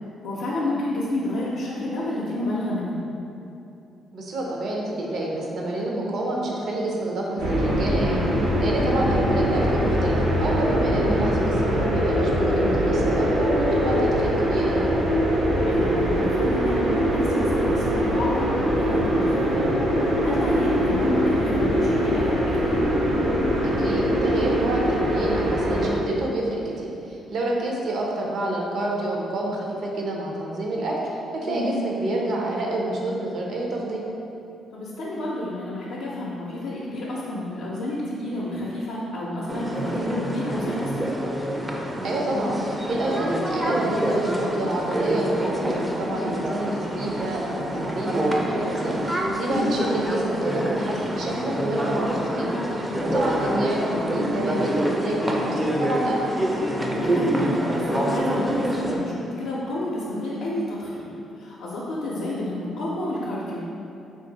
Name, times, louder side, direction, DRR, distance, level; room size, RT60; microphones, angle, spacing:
voice 1, 0.2-3.0 10.9-11.2 15.6-19.7 20.0-22.8 31.5-31.8 34.7-41.1 46.1-46.4 49.5-49.8 56.9-63.6, left 1 dB, 85° left, -6 dB, 0.5 m, -30 dB
voice 2, 4.1-8.2 8.6-14.9 23.6-34.0 42.0-52.5 52.8-56.4, right 1 dB, 65° right, -2 dB, 0.6 m, -28 dB
sound 1, 7.4-25.9, equal, 85° right, 1.0 m, -22 dB
sound 2, 39.5-59.0, right 1 dB, 15° right, 0.4 m, -26 dB
3.2 x 2.5 x 3.8 m, 2.7 s
cardioid pair, 90°, 0 cm